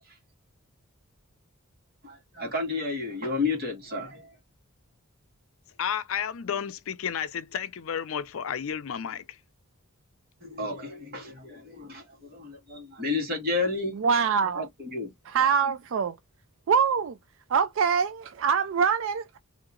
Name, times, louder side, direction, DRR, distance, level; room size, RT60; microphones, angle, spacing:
voice 1, 2.0-4.4 10.4-14.0 14.5-15.1, left 3 dB, 45° right, 1.9 m, -31 dB
voice 2, 5.8-9.2, left 8 dB, 70° left, 0.5 m, -32 dB
voice 3, 14.0-14.7 15.3-16.1 16.7-17.2 17.5-19.4, right 6 dB, 60° right, 0.3 m, -24 dB
3.1 x 2.8 x 3.7 m
head